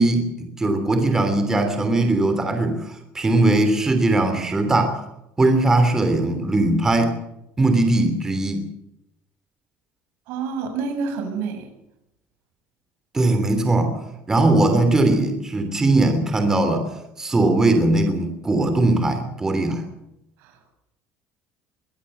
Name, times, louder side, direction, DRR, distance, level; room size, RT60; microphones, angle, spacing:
voice 1, 0.0-5.0 5.4-7.1 7.6-8.6 13.1-14.0 14.3-16.9 17.2-19.8, right 2 dB, 15° right, 7 dB, 3.1 m, -20 dB
voice 2, 10.3-11.7 20.4-20.6, right 5 dB, 70° right, 6 dB, 6.9 m, -28 dB
23.0 x 15.5 x 7.9 m, 0.83 s
cardioid pair, 170°, 4 cm